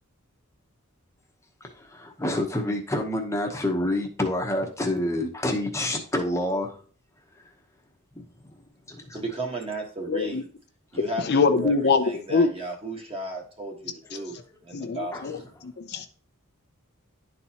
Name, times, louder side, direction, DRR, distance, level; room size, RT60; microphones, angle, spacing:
voice 1, 1.6-6.7 8.1-8.5 8.9-9.2 15.1-15.3, left 1 dB, 15° left, 0.9 m, -28 dB
voice 2, 9.1-10.5 10.9-14.4 14.6-15.5, right 1 dB, 25° right, 1.4 m, -34 dB
voice 3, 10.1-10.4 11.2-12.0 12.3-12.5 14.7-16.1, left 4 dB, 50° left, 0.5 m, -23 dB
11.0 x 4.1 x 2.9 m
head